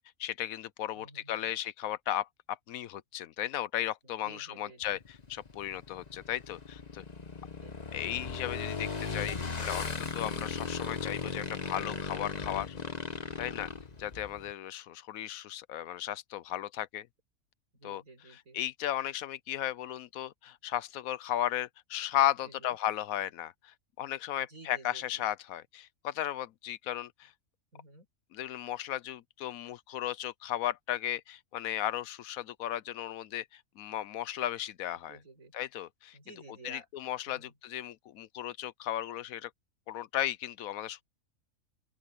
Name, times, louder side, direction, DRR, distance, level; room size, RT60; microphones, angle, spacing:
voice 1, 0.0-5.0 5.3-7.0 7.9-12.8 13.4-13.7 14.0-17.1 17.8-18.0 18.5-27.3 28.3-35.2 35.5-36.2 36.6-39.5 39.9-41.0, left 12 dB, 85° left, 1.1 m, -35 dB
voice 2, 0.9-1.5 4.0-5.0 7.6-7.9 13.5-13.8 17.7-18.6 22.4-22.8 24.4-25.2 27.7-28.1 35.1-35.6 36.1-36.9 37.3-37.5, right 2 dB, 90° right, 7.9 m, -53 dB
Motorcycle / Engine, 4.8-14.5, left 4 dB, 30° left, 1.2 m, -38 dB
open air
omnidirectional pair, 1.4 m